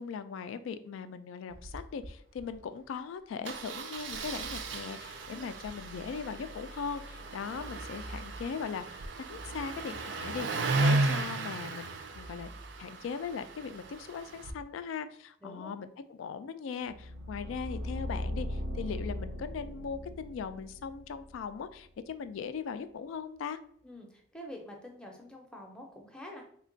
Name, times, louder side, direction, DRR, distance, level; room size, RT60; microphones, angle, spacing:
voice 1, 0.0-12.5 12.8-23.6, left 6 dB, 90° left, 11 dB, 0.3 m, -39 dB
Engine starting, 1.5-1.8 2.0-2.1 2.4-2.5 3.4-14.5, right 3 dB, 65° right, 0.4 m, -35 dB
sound 1, 16.9-21.8, left 1 dB, 85° right, 0.8 m, -39 dB
voice 2, 23.8-26.4, left 1 dB, 5° left, 1 dB, 0.5 m, -47 dB
3.2 x 2.2 x 3.8 m, 0.66 s
head